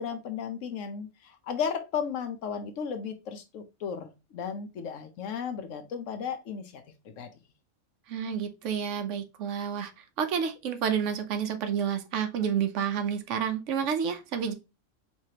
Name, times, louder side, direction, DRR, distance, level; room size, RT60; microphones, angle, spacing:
voice 1, 0.0-6.8 7.2-7.3, left 7 dB, 80° left, 1.1 m, -34 dB
voice 2, 8.1-14.5, right 7 dB, 70° right, 1.1 m, -30 dB
4.7 x 3.3 x 2.8 m
omnidirectional pair, 1.3 m